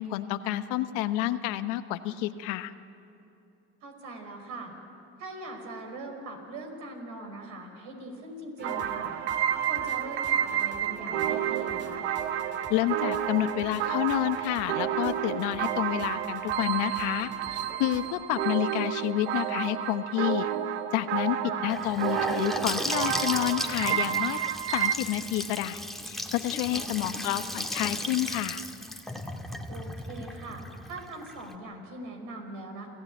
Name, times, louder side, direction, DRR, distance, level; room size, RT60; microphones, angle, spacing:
voice 1, 0.0-2.7 12.7-20.5 20.9-24.4 24.7-28.7, left 14 dB, 75° left, 11 dB, 1.1 m, -29 dB
voice 2, 3.8-4.7 5.2-9.1 9.7-12.1 21.4-21.6 26.7-26.9 29.7-32.9, right 2 dB, 70° right, 3 dB, 5.2 m, -41 dB
sound 1, 8.6-18.1, right 3 dB, 35° right, 2.6 m, -45 dB
sound 2, 8.6-24.9, right 10 dB, 85° right, 1.0 m, -30 dB
Gurgling / Sink (filling or washing) / Bathtub (filling or washing), 21.7-31.5, left 1 dB, ahead, 1.8 m, -36 dB
28.0 x 15.5 x 9.2 m, 2.8 s
supercardioid pair, 80°, 31 cm